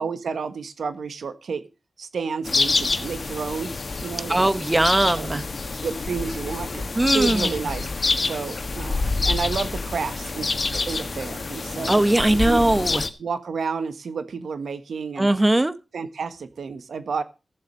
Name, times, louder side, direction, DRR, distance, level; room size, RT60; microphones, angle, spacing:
voice 1, 0.0-1.7 2.0-3.7 4.0-4.5 5.2-5.5 5.8-7.9 8.2-11.9 12.3-12.6 13.2-15.3 15.9-17.2, right 5 dB, 85° right, 11 dB, 1.4 m, -31 dB
sound 1, 2.4-13.1, left 3 dB, 60° left, 1.5 m, -27 dB
voice 2, 4.3-5.4 7.0-7.5 11.9-13.0 15.2-15.7, right 1 dB, 25° right, 12 dB, 1.4 m, -20 dB
15.5 x 7.4 x 5.3 m, 0.29 s
cardioid pair, 40°, 0 cm